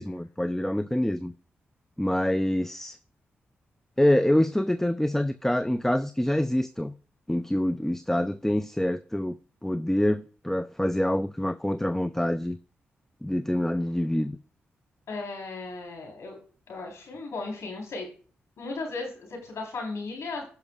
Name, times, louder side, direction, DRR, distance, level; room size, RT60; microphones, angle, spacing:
voice 1, 0.0-1.3 2.0-3.0 4.0-6.9 7.3-9.4 9.6-12.6 13.2-14.4, left 1 dB, 10° left, 0.5 m, -26 dB
voice 2, 15.1-16.4 16.7-18.1 18.6-20.4, left 3 dB, 70° left, 4.0 m, -36 dB
17.0 x 5.9 x 2.4 m
supercardioid pair, 45°, 5 cm